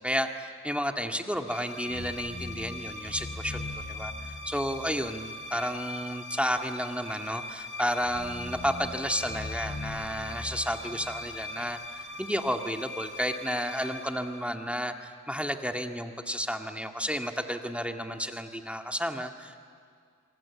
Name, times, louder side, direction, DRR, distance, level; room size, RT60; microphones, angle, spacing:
voice 1, 0.0-19.7, equal, 5° right, 4 dB, 1.9 m, -32 dB
sound 1, 1.5-15.1, left 2 dB, 35° left, 3.3 m, -39 dB
26.0 x 24.5 x 8.6 m, 2.2 s
cardioid pair, 45°, 32 cm